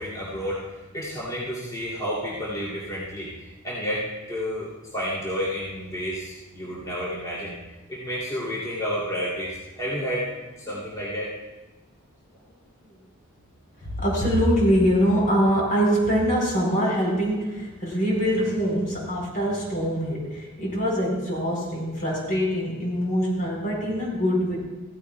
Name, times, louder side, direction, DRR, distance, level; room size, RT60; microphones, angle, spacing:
voice 1, 0.0-7.5 7.9-11.3, equal, 15° left, -7 dB, 3.1 m, -31 dB
voice 2, 14.0-24.6, equal, 40° left, -3 dB, 3.9 m, -23 dB
16.0 x 15.0 x 2.4 m, 1.2 s
head